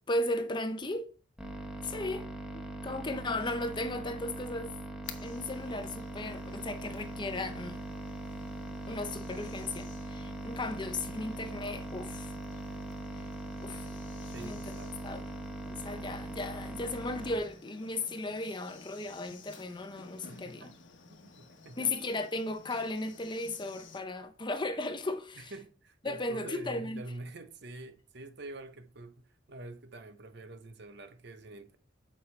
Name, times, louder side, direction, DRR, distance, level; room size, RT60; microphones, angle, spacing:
voice 1, 0.1-1.1 1.8-2.3 2.5-4.8 5.2-7.8 8.9-12.3 13.2-13.3 13.6-13.9 14.4-14.8 15.0-15.2 15.7-20.7 21.8-25.5 26.0-27.0, left 2 dB, 25° left, 0.7 m, -36 dB
sound 1, 1.4-17.4, right 1 dB, 5° right, 1.3 m, -41 dB
sound 2, 5.0-24.0, left 5 dB, 85° left, 1.1 m, -54 dB
voice 2, 13.7-14.9 20.3-20.7 21.1-21.9 25.4-31.8, right 2 dB, 65° right, 0.9 m, -47 dB
8.7 x 5.5 x 3.3 m
head